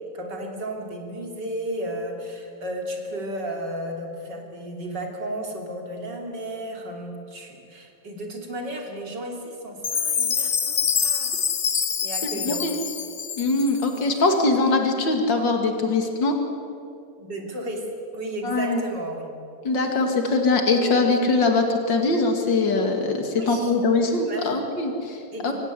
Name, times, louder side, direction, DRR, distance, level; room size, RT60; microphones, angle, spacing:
voice 1, 0.1-11.3 12.0-12.6 17.2-17.9 18.1-19.3 23.4-23.7 24.2-24.5 25.3-25.5, right 1 dB, 65° right, 2 dB, 3.6 m, -33 dB
Chime, 9.8-14.0, left 6 dB, 40° left, 0.9 m, -26 dB
voice 2, 12.4-12.8 13.4-16.3 18.4-18.8 19.6-25.5, left 3 dB, 80° left, 4 dB, 3.0 m, -22 dB
25.0 x 16.5 x 9.3 m, 2.5 s
omnidirectional pair, 2.0 m